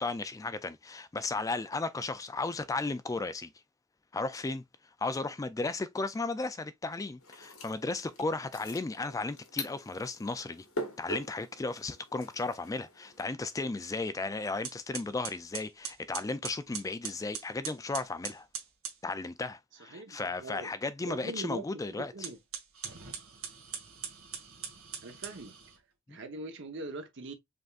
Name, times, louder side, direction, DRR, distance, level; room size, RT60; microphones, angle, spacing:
voice 1, 0.0-3.5 4.1-4.6 5.0-10.7 11.0-18.5 19.0-22.1 26.1-26.2, left 3 dB, 15° left, 0.3 m, -35 dB
sound 1, 7.2-13.2, left 1 dB, 80° left, 1.6 m, -43 dB
sound 2, 14.1-14.2 14.6-19.0 22.1-25.8, right 8 dB, 80° right, 1.6 m, -42 dB
voice 2, 19.9-20.7 21.0-21.6 21.9-22.4 25.0-25.5 26.1-27.3, right 2 dB, 60° right, 1.0 m, -41 dB
5.1 x 3.5 x 2.4 m
head